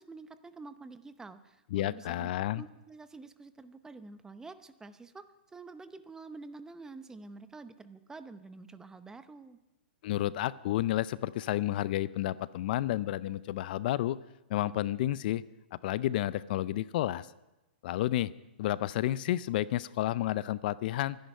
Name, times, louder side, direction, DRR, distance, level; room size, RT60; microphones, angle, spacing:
voice 1, 0.0-2.3 2.6-5.3 5.5-9.6, right 3 dB, 10° right, 11 dB, 0.8 m, -48 dB
voice 2, 1.7-2.6 10.0-14.2 14.5-15.4 15.8-17.3 17.8-18.3 18.6-21.2, left 14 dB, 55° left, 18 dB, 0.5 m, -31 dB
24.0 x 10.5 x 5.5 m, 1.0 s
hypercardioid pair, 130°, 6 cm